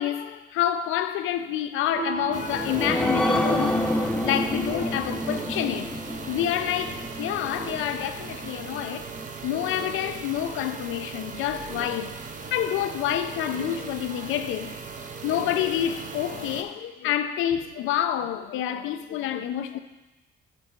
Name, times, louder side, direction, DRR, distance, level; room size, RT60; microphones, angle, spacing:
voice 1, 0.0-3.9 4.2-5.9 6.3-9.1 9.4-12.2 12.5-14.7 15.2-19.8, left 11 dB, 90° left, 0.5 m, -28 dB
Piano, 2.0-6.9, right 5 dB, 65° right, 0.9 m, -40 dB
sound 1, 2.2-9.3 9.7-9.8 10.2-10.3, left 1 dB, 5° left, 0.6 m, -29 dB
sound 2, 2.3-16.6, right 5 dB, 40° right, 0.7 m, -38 dB
7.0 x 4.1 x 6.7 m
cardioid pair, 90°, 20 cm